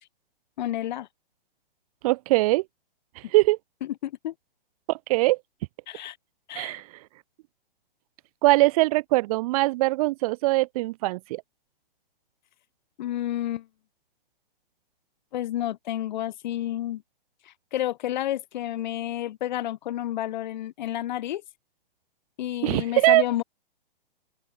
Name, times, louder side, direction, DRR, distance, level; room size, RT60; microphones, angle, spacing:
voice 1, 0.6-1.1 4.0-4.3 5.9-6.2 6.5-6.8 13.0-13.7 15.3-17.0 17.5-21.4 22.4-23.4, left 13 dB, 50° left, 2.5 m, -30 dB
voice 2, 2.0-2.6 3.1-3.6 4.9-5.4 6.5-6.8 8.4-11.4 22.6-23.2, right 20 dB, 40° right, 1.8 m, -22 dB
open air
hypercardioid pair, 125°, 29 cm